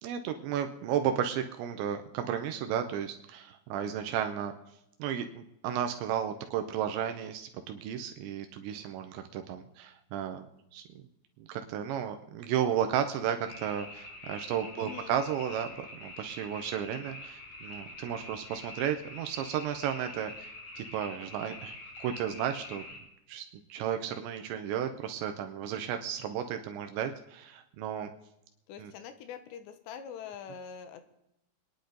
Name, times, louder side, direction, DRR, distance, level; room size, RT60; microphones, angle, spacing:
voice 1, 0.0-4.5 5.0-10.5 10.7-10.8 11.4-21.7 22.0-22.8 23.3-28.1 28.8-28.9, right 9 dB, 80° right, 7 dB, 3.1 m, -33 dB
sound 1, 13.4-23.0, left 2 dB, 45° left, 5.8 m, -45 dB
voice 2, 14.7-15.2 28.7-31.0, left 8 dB, 75° left, 9 dB, 3.1 m, -44 dB
25.0 x 10.0 x 3.9 m, 0.83 s
omnidirectional pair, 5.2 m